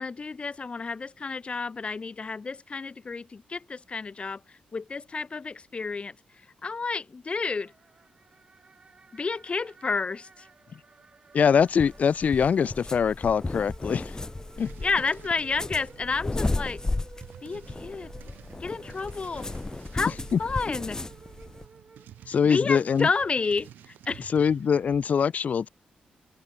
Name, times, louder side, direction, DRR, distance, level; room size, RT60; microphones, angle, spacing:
voice 1, 0.0-7.7 9.1-10.5 14.8-16.8 17.4-18.1 18.6-19.5 19.9-21.0 22.4-24.3, left 4 dB, 40° left, 1.4 m, -31 dB
sound 1, 7.4-22.7, right 4 dB, 40° right, 1.6 m, -53 dB
voice 2, 11.3-14.1 14.6-14.7 20.3-20.4 22.3-23.1 24.3-25.7, left 7 dB, 55° left, 0.5 m, -23 dB
sound 2, 11.4-21.6, left 2 dB, 20° left, 0.8 m, -34 dB
sound 3, 14.6-25.1, right 11 dB, 90° right, 0.7 m, -51 dB
cardioid pair, 70°, 3 cm